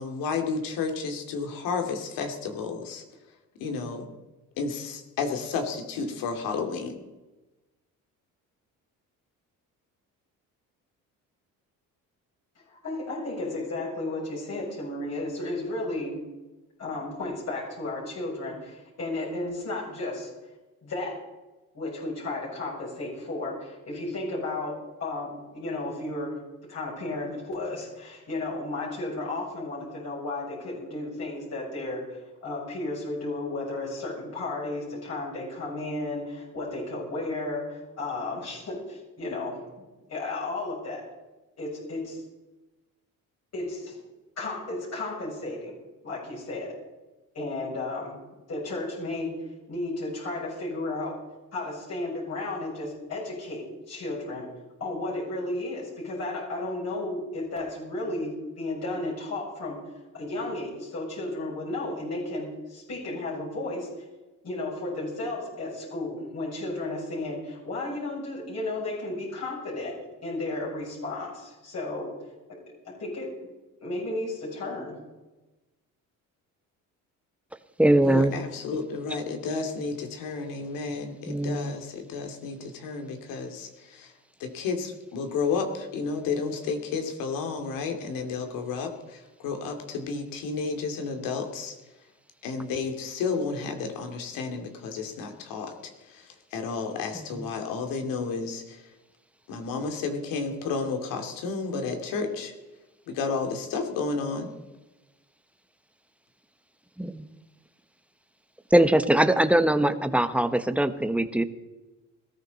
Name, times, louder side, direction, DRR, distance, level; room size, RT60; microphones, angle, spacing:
voice 1, 0.0-3.0 3.6-4.1 4.6-7.0 78.0-84.1 84.4-91.8 92.4-98.8 99.5-102.5 103.1-104.5, left 4 dB, 85° left, 5 dB, 2.5 m, -32 dB
voice 2, 12.7-16.2 16.8-20.3 20.8-21.2 21.7-39.6 40.1-41.1 41.6-42.2 43.5-44.0 44.4-45.8 46.0-46.7 47.3-48.2 48.5-49.3 49.7-51.2 51.5-54.5 54.8-59.8 60.1-63.9 64.4-72.1 72.5-72.6 72.8-73.3 73.8-75.0, left 2 dB, 50° left, -4 dB, 7.4 m, -33 dB
voice 3, 77.8-78.4 81.3-81.7 107.0-107.3 108.7-111.4, right 1 dB, 5° right, 10 dB, 1.1 m, -22 dB
21.0 x 14.0 x 4.1 m, 1.1 s
cardioid pair, 100°, 33 cm